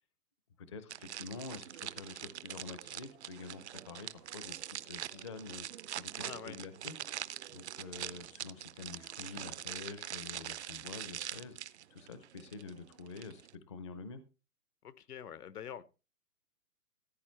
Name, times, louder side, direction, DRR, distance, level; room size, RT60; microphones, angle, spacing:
voice 1, 0.6-5.7 6.0-6.9 7.5-13.4 13.7-14.2, left 4 dB, 20° left, 12 dB, 0.5 m, -47 dB
sound 1, 0.9-13.5, right 11 dB, 50° right, 0.5 m, -44 dB
voice 2, 6.2-6.6 14.8-15.8, left 9 dB, 80° left, 16 dB, 1.0 m, -45 dB
15.0 x 8.5 x 3.2 m, 0.31 s
hypercardioid pair, 150°, 45 cm